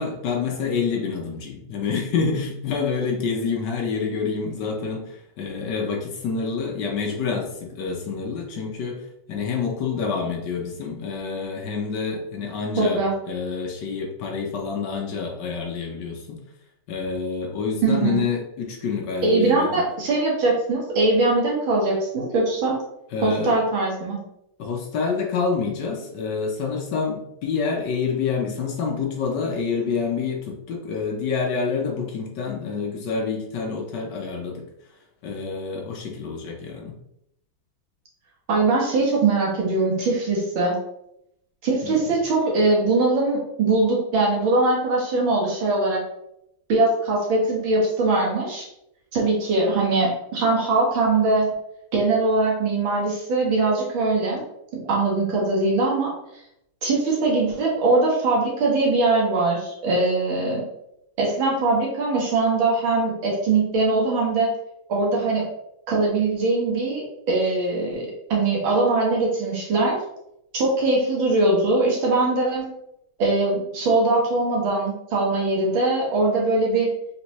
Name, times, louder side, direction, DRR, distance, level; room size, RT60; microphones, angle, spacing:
voice 1, 0.0-9.0 9.3-16.4 16.9-19.8 23.1-23.6 24.6-34.6 35.2-37.0 41.8-42.2, left 5 dB, 65° left, 0 dB, 1.2 m, -27 dB
voice 2, 12.8-13.1 17.8-18.3 19.2-22.8 23.2-24.2 38.5-40.8 41.6-46.0 46.7-48.7 49.1-51.5 51.9-54.4 54.9-56.1 56.8-60.6 61.2-64.5 64.9-65.4 65.9-70.0 70.5-72.7 73.2-76.9, right 3 dB, 75° right, -3 dB, 2.1 m, -21 dB
4.3 x 3.7 x 3.0 m, 0.80 s
omnidirectional pair, 2.2 m